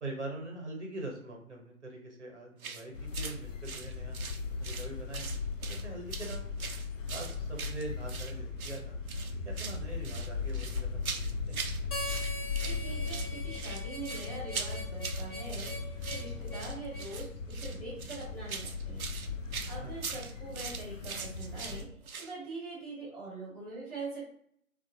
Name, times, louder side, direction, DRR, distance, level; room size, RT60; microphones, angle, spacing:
voice 1, 0.0-4.2 4.6-5.3 5.7-6.5 7.1-8.9 9.4-11.7 19.8-20.0, right 2 dB, 50° right, 1 dB, 0.9 m, -43 dB
sound 1, 2.6-2.8 3.1-3.4 3.6-4.9 5.1-5.8 6.1-8.3 8.6-8.8 9.1-9.8 10.0-11.8 12.1-12.8 13.1-22.3, right 5 dB, 75° right, 0.5 m, -41 dB
sound 2, 2.9-21.9, left 4 dB, 60° left, 0.5 m, -38 dB
Harmonica, 11.9-17.1, left 1 dB, 80° left, 0.8 m, -42 dB
voice 2, 12.6-19.0 19.7-21.8 22.2-24.3, right 3 dB, ahead, -12 dB, 0.4 m, -43 dB
3.1 x 2.4 x 2.8 m, 0.65 s
figure-of-eight pair, 150°, 43 cm